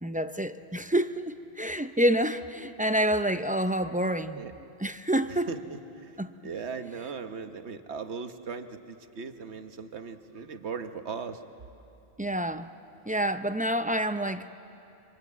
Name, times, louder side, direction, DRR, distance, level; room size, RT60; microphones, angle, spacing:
voice 1, 0.0-4.4 4.8-5.5 6.2-6.3 12.2-12.7 13.1-14.5, right 1 dB, 10° right, 9 dB, 0.4 m, -28 dB
voice 2, 5.5-6.2 6.4-11.4, right 5 dB, 80° right, 8 dB, 1.4 m, -38 dB
26.5 x 25.0 x 8.2 m, 2.8 s
omnidirectional pair, 1.1 m